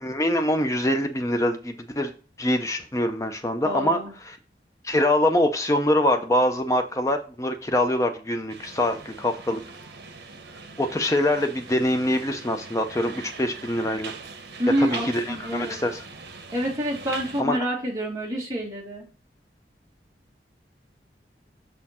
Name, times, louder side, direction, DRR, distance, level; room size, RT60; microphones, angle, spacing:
voice 1, 0.0-2.1 2.4-4.0 4.3-4.4 4.8-9.6 10.8-14.1 14.8-16.0 17.4-17.6, left 1 dB, 20° left, 6 dB, 0.5 m, -24 dB
voice 2, 3.6-4.1 14.6-15.8 16.5-19.0, equal, 20° right, -3 dB, 2.0 m, -27 dB
sound 1, 8.5-17.4, right 4 dB, 80° right, 1.0 m, -41 dB
6.5 x 4.3 x 4.2 m, 0.38 s
head